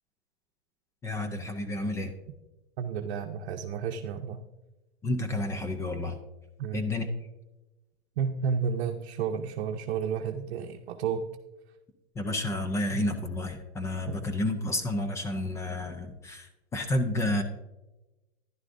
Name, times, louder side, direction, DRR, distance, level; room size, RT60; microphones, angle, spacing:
voice 1, 1.0-2.1 5.0-6.2 6.7-7.1 12.2-17.4, left 1 dB, 10° left, 7 dB, 0.4 m, -30 dB
voice 2, 2.8-4.4 6.6-6.9 8.2-11.2 12.9-13.0 14.1-14.2, right 6 dB, 60° right, 2 dB, 0.8 m, -31 dB
11.0 x 11.0 x 2.6 m, 1.0 s
hypercardioid pair, 145°, 32 cm